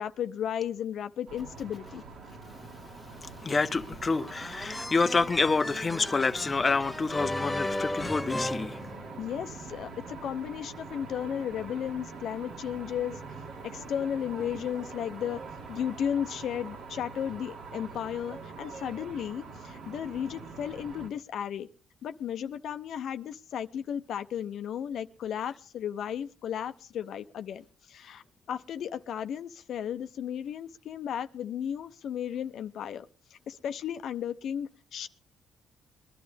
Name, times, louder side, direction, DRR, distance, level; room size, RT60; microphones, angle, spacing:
voice 1, 0.0-2.0 9.2-13.2 13.6-15.4 15.7-21.7 22.0-33.1 33.3-35.1, left 9 dB, 70° left, 0.7 m, -34 dB
sound 1, 1.3-21.1, right 4 dB, 70° right, 2.5 m, -44 dB
voice 2, 3.2-8.8, left 4 dB, 30° left, 0.6 m, -28 dB
sound 2, 4.1-9.5, left 1 dB, 5° left, 0.9 m, -36 dB
21.5 x 12.0 x 3.5 m
cardioid pair, 90°, 0 cm